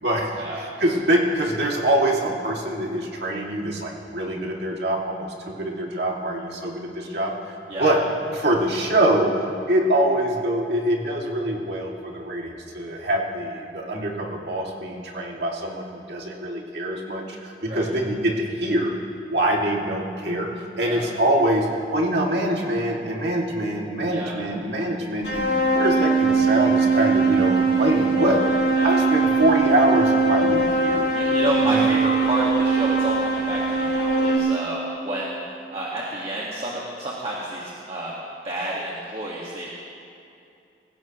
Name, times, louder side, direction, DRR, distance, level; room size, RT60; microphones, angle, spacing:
voice 1, 0.0-8.0 8.3-9.3 9.7-18.9 19.3-20.5 20.8-25.5 25.7-28.4 28.8-31.1 31.6-31.8, right 1 dB, 65° right, -2 dB, 2.5 m, -24 dB
sound 1, 25.2-34.4, right 3 dB, 90° left, 3.8 m, -21 dB
voice 2, 31.1-35.4 35.7-39.7, right 1 dB, 35° right, -5 dB, 1.8 m, -30 dB
24.5 x 16.0 x 3.1 m, 2.6 s
head